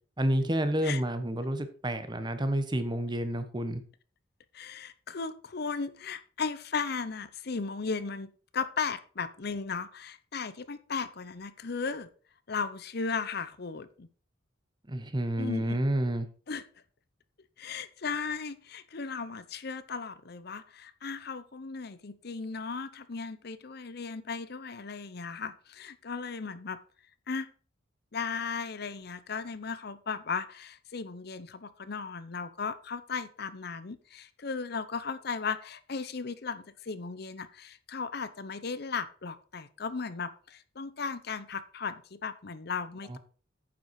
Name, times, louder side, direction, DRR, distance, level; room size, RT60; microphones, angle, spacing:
voice 1, 0.2-3.8 14.9-16.3 43.1-43.2, right 1 dB, 25° right, 10 dB, 1.2 m, -29 dB
voice 2, 4.5-12.1 12.5-14.1 15.4-15.8 16.5-16.6 17.6-26.8 27.3-27.5 28.1-43.2, left 5 dB, 60° left, 14 dB, 0.7 m, -36 dB
9.5 x 7.0 x 4.7 m, 0.41 s
head